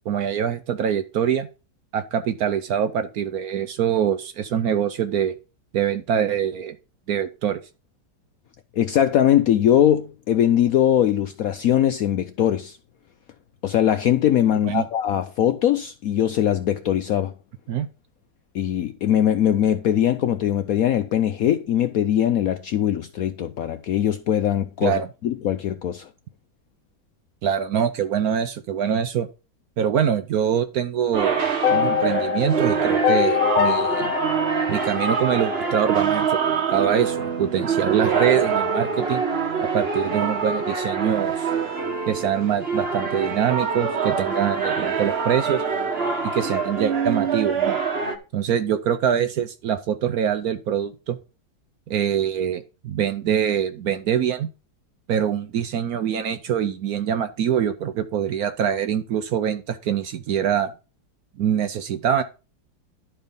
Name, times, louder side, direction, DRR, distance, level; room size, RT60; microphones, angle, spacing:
voice 1, 0.1-1.5 1.9-5.3 5.7-6.8 7.1-7.6 14.6-14.9 17.7-17.9 24.8-25.1 27.4-29.3 29.8-31.4 31.7-34.1 34.7-36.4 36.7-39.2 39.6-41.5 42.1-45.6 46.2-47.8 48.3-51.2 51.9-54.5 55.1-60.7 61.4-62.2, right 8 dB, 65° right, 1.0 m, -24 dB
voice 2, 8.7-12.8 13.6-17.3 18.5-26.1, left 10 dB, 70° left, 0.8 m, -21 dB
sound 1, 31.1-48.2, right 6 dB, 35° right, 1.3 m, -25 dB
sound 2, 31.6-35.8, left 10 dB, 90° left, 1.4 m, -24 dB
sound 3, 37.2-42.2, right 3 dB, 15° right, 1.0 m, -38 dB
11.0 x 4.6 x 5.3 m
omnidirectional pair, 2.0 m